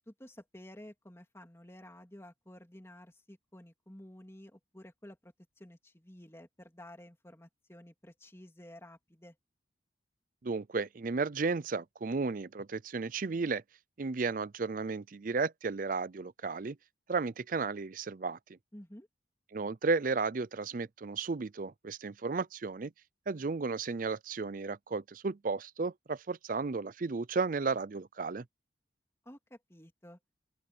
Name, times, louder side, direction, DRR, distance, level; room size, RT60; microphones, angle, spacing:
voice 1, 0.0-9.4 18.7-19.1 29.2-30.2, left 1 dB, 15° left, 3.1 m, -52 dB
voice 2, 10.4-13.6 14.0-16.8 17.1-18.4 19.5-22.9 23.3-28.4, right 4 dB, 45° right, 0.5 m, -33 dB
open air
head